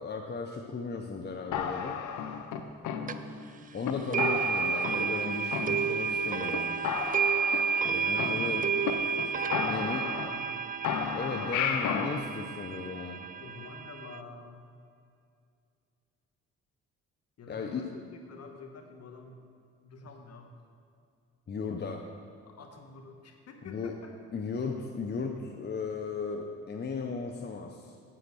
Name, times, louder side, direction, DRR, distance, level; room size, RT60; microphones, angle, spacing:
voice 1, 0.0-2.0 3.7-6.9 7.9-8.7 9.7-10.0 11.1-13.3 17.5-17.8 21.5-22.1 23.6-23.9 24.3-28.0, left 5 dB, 35° left, 3 dB, 0.7 m, -36 dB
sound 1, 1.5-3.5 3.8-3.9 4.2-5.2 5.5-6.2 6.5-6.6 6.8-8.9 9.2-9.3 9.5-10.6 10.8-12.2, left 7 dB, 80° left, 0.8 m, -33 dB
sound 2, 3.1-3.2 4.1-14.2, right 6 dB, 30° right, 0.4 m, -31 dB
voice 2, 9.5-10.7 13.4-14.7 17.4-19.4 19.8-20.6 22.4-24.2, left 4 dB, 55° left, 4 dB, 1.4 m, -48 dB
7.9 x 7.7 x 6.2 m, 2.4 s
cardioid pair, 90°, 30 cm